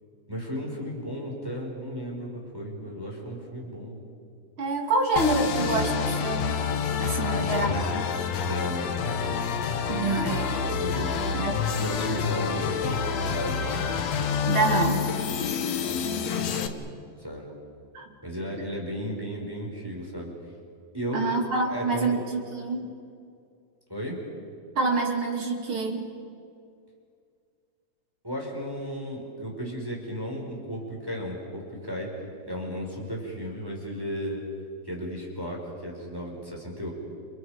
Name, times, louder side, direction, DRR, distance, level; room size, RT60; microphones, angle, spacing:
voice 1, 0.3-4.0 7.2-8.0 8.4-9.4 10.5-11.3 11.7-13.7 15.8-16.8 17.2-17.5 18.2-20.3 20.9-21.3 21.6-22.2 23.9-24.2 28.2-32.2 32.4-34.4 34.8-36.9, equal, 5° right, -1 dB, 5.1 m, -34 dB
voice 2, 4.6-6.6 7.0-7.7 9.9-10.6 11.3-11.7 14.5-15.1 17.9-18.1 21.1-22.9 24.7-26.1, right 3 dB, 35° right, 1 dB, 2.9 m, -27 dB
sound 1, 5.2-16.7, left 6 dB, 65° left, 1.8 m, -28 dB
30.0 x 29.5 x 5.2 m, 2.3 s
omnidirectional pair, 4.5 m